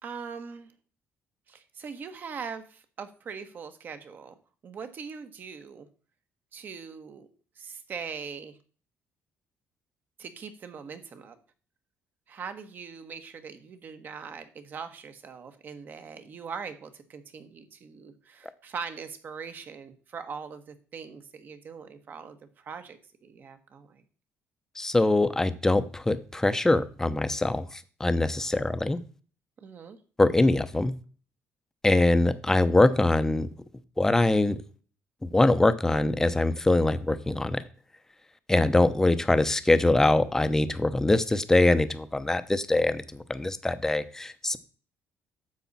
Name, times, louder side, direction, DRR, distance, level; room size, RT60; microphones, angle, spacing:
voice 1, 0.0-0.7 1.5-4.3 4.6-5.9 6.5-7.3 7.6-8.6 10.2-11.4 12.3-24.0 29.6-30.0, right 6 dB, 40° right, 10 dB, 1.3 m, -41 dB
voice 2, 24.8-29.0 30.2-30.9 31.8-33.5 34.0-34.6 35.2-37.6 38.5-44.6, left 2 dB, 10° left, 11 dB, 0.8 m, -23 dB
10.5 x 7.1 x 4.1 m, 0.40 s
cardioid pair, 135°, 5 cm